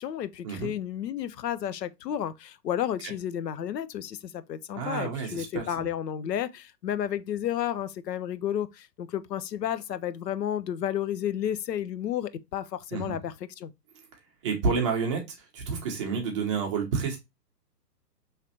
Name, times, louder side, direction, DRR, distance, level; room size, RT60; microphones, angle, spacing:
voice 1, 0.0-13.7, left 10 dB, 75° left, 0.6 m, -32 dB
voice 2, 4.7-5.9 12.9-13.2 14.4-15.2 15.5-17.2, right 5 dB, 20° right, 0.6 m, -29 dB
4.9 x 3.2 x 2.7 m
hypercardioid pair, 145°, 50 cm